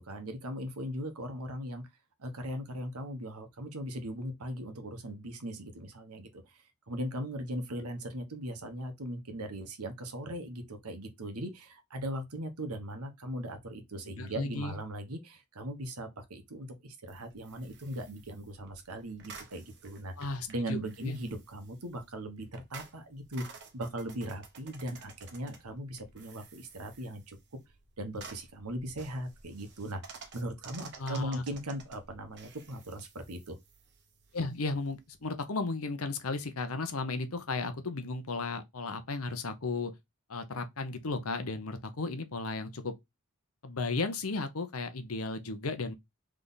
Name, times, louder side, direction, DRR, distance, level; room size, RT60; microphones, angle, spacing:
voice 1, 0.0-1.8 2.2-20.1 20.5-27.4 28.0-33.6, right 1 dB, 80° right, 1.2 m, -39 dB
voice 2, 14.2-14.8 20.2-21.2 31.0-31.4 34.3-39.9 40.3-42.9 43.6-45.9, left 3 dB, 70° left, 0.9 m, -35 dB
sound 1, 17.1-35.3, right 5 dB, 50° right, 1.0 m, -53 dB
3.7 x 3.4 x 4.0 m
head